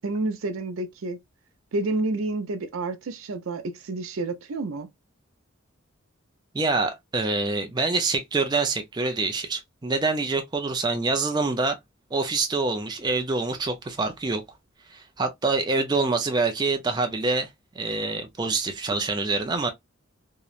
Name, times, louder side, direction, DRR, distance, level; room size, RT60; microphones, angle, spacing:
voice 1, 0.0-1.2 1.7-4.9, right 2 dB, 80° right, 0.5 m, -29 dB
voice 2, 6.5-11.8 12.1-14.4 14.9-17.5 17.7-19.7, right 3 dB, 20° right, 0.4 m, -26 dB
2.8 x 2.1 x 2.3 m
head